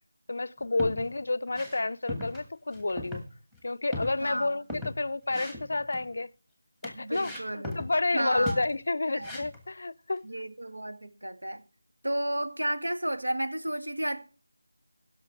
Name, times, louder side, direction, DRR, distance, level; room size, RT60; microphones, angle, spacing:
voice 1, 0.3-3.2 3.6-6.3 6.8-10.3, left 2 dB, 55° left, 0.5 m, -30 dB
sound 1, 0.6-1.1 1.5-1.8 2.1-2.5 2.7-3.3 3.5-3.6 3.9-5.0 5.3-6.1 6.8-8.0 8.3-8.7 9.2-9.7, left 1 dB, ahead, 1.3 m, -38 dB
voice 2, 4.2-4.6 6.9-7.8 8.1-8.6 9.1-9.3 10.2-11.6 12.0-14.2, right 1 dB, 90° right, 1.8 m, -32 dB
16.5 x 6.3 x 4.7 m
figure-of-eight pair, 170°, 0 cm